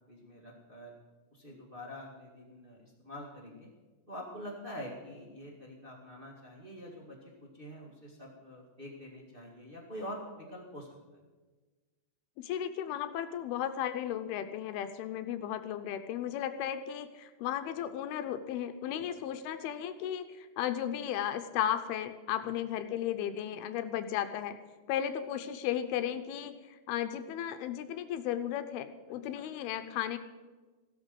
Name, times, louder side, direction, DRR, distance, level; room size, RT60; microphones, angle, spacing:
voice 1, 0.1-1.0 1.3-3.7 4.1-10.9 19.0-19.1 22.4-22.5, equal, 30° right, -3 dB, 0.9 m, -46 dB
voice 2, 12.4-24.6 24.9-30.2, left 10 dB, 80° left, 10 dB, 2.5 m, -35 dB
15.5 x 13.0 x 5.3 m, 1.3 s
omnidirectional pair, 4.7 m